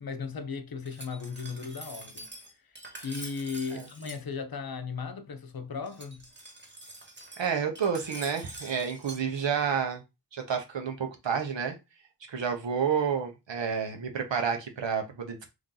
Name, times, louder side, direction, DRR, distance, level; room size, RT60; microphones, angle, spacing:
voice 1, 0.0-2.3 3.0-6.3, left 5 dB, 55° left, 0.7 m, -36 dB
Glass, 0.8-4.2 5.9-9.2, right 2 dB, 25° right, 1.1 m, -46 dB
voice 2, 7.4-10.0 10.3-11.8 12.3-15.5, right 6 dB, 85° right, 0.9 m, -30 dB
3.2 x 2.7 x 3.7 m
wide cardioid pair, 70°, 43 cm